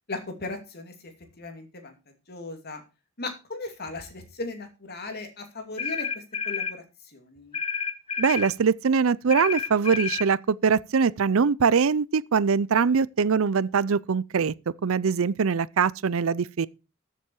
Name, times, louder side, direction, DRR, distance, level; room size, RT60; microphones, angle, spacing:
voice 1, 0.1-0.9 1.4-1.9 2.3-2.8 3.2-7.6, left 2 dB, 50° left, 2.7 m, -37 dB
sound 1, 5.8-6.8 7.5-8.5 9.3-10.3, left 6 dB, 30° left, 0.7 m, -30 dB
voice 2, 8.2-14.5 14.8-16.7, right 6 dB, 75° right, 0.5 m, -23 dB
14.0 x 7.4 x 4.7 m
head